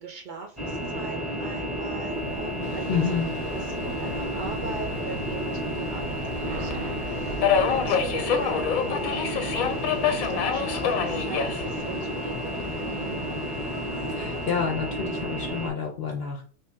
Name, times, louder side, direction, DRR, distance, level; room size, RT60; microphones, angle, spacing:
voice 1, 0.0-3.0 3.7-13.2, right 4 dB, 60° right, 2 dB, 0.5 m, -40 dB
sound 1, 0.6-15.7, equal, ahead, 0.8 m, -31 dB
sound 2, 2.1-10.4, right 4 dB, 85° right, 1.1 m, -42 dB
Subway metro underground, 2.6-14.6, left 7 dB, 85° left, 1.0 m, -30 dB
voice 2, 2.9-3.3 14.1-16.4, left 6 dB, 55° left, 0 dB, 0.7 m, -29 dB
3.2 x 2.7 x 3.4 m, 0.42 s
omnidirectional pair, 1.5 m